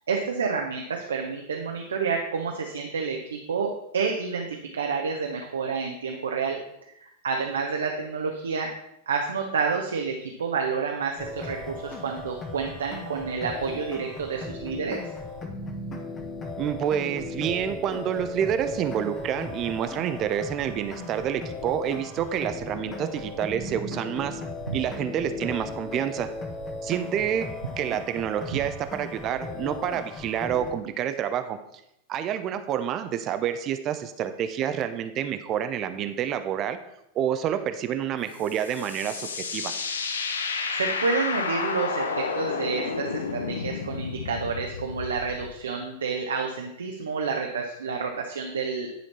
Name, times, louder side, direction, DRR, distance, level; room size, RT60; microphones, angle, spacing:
voice 1, 0.1-6.6 7.0-8.7 9.1-15.0 24.7-24.8 40.7-49.0, right 5 dB, 70° right, 2 dB, 0.8 m, -29 dB
sound 1, 11.2-30.7, left 2 dB, 25° left, 1.1 m, -37 dB
voice 2, 16.6-24.4 24.7-26.3 26.8-27.5 27.8-31.6 32.1-36.8 37.1-39.7, right 9 dB, 35° right, 9 dB, 0.5 m, -28 dB
sound 2, 38.3-45.5, left 5 dB, 70° left, 0.7 m, -31 dB
10.0 x 4.4 x 4.2 m, 0.80 s
figure-of-eight pair, 90°, 0 cm